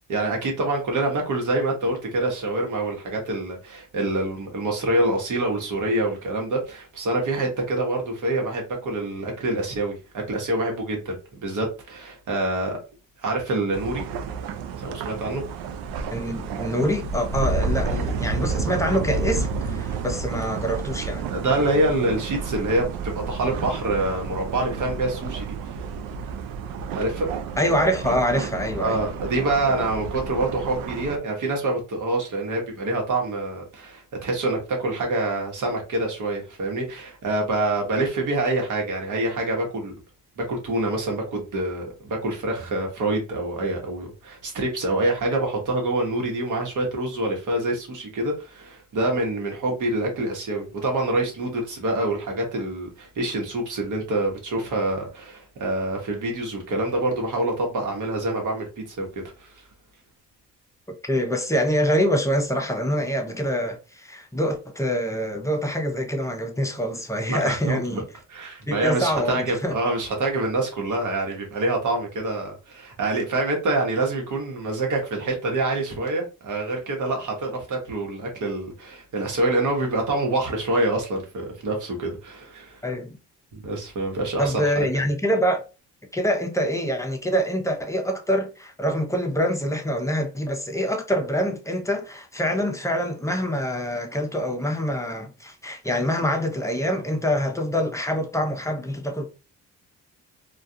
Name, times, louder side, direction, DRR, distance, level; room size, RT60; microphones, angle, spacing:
voice 1, 0.1-12.8 13.2-14.0 14.8-15.4 21.3-25.7 26.9-27.3 28.8-39.9 40.4-59.1 59.4-59.5 67.3-68.0 68.3-82.8 83.5-85.1, right 2 dB, 65° right, 1.1 m, -26 dB
sound 1, 13.7-31.2, right 4 dB, 80° right, 0.5 m, -30 dB
voice 2, 16.1-21.3 27.6-29.0 61.1-68.0 68.7-69.7 82.8-83.2 84.4-85.6 86.1-99.3, equal, 10° left, 0.6 m, -25 dB
2.4 x 2.3 x 2.7 m
cardioid pair, 75°, 33 cm